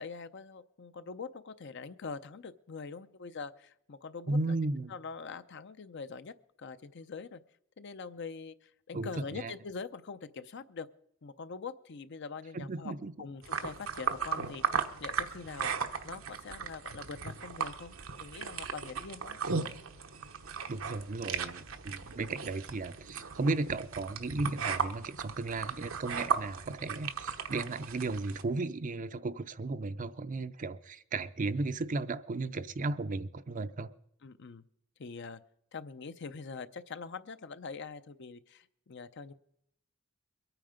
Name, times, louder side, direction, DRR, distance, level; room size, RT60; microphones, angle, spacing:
voice 1, 0.0-4.6 4.9-6.3 6.6-7.4 7.8-10.9 11.2-15.7 16.0-19.4 34.2-34.6 35.0-35.4 35.7-39.3, left 5 dB, 60° left, 0.6 m, -44 dB
voice 2, 4.3-4.9 8.9-9.5 12.5-13.1 19.5-19.6 20.7-33.9, right 3 dB, 40° right, 0.5 m, -35 dB
sound 1, 13.4-28.4, right 6 dB, 85° right, 1.0 m, -36 dB
22.5 x 9.1 x 5.1 m
head